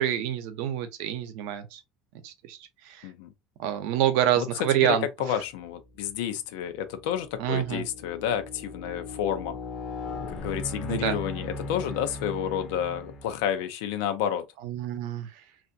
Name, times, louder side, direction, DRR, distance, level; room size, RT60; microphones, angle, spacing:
voice 1, 0.0-1.8 2.2-2.6 2.8-3.1 3.6-5.1 7.4-7.9 10.9-11.2 14.6-15.3, right 11 dB, 70° right, 0.7 m, -27 dB
voice 2, 4.8-9.6 10.3-14.4, left 9 dB, 85° left, 0.6 m, -30 dB
sound 1, 5.8-6.2 6.8-13.6, left 2 dB, 25° left, 0.6 m, -38 dB
3.3 x 2.6 x 2.6 m
cardioid pair, 175°, 0 cm